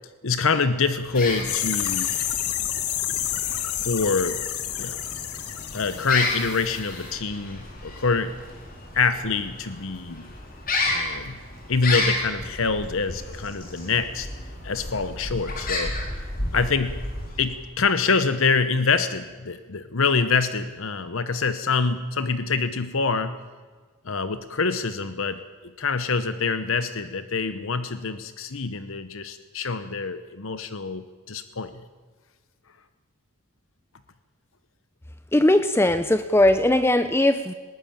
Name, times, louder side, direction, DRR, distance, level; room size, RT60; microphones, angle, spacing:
voice 1, 0.2-2.2 3.7-4.4 4.8-5.1 5.7-8.4 8.9-10.3 10.8-11.4 11.7-14.3 14.6-15.9 16.5-17.0 17.4-23.4 24.0-31.8, left 4 dB, 65° left, 11 dB, 0.9 m, -25 dB
sound 1, 1.0-17.7, left 2 dB, 40° left, 4.2 m, -32 dB
sound 2, 1.1-6.8 7.0-7.1, left 11 dB, 85° left, 1.5 m, -29 dB
voice 2, 35.3-37.5, left 1 dB, 10° left, 11 dB, 0.6 m, -19 dB
20.0 x 18.0 x 8.8 m, 1.4 s
head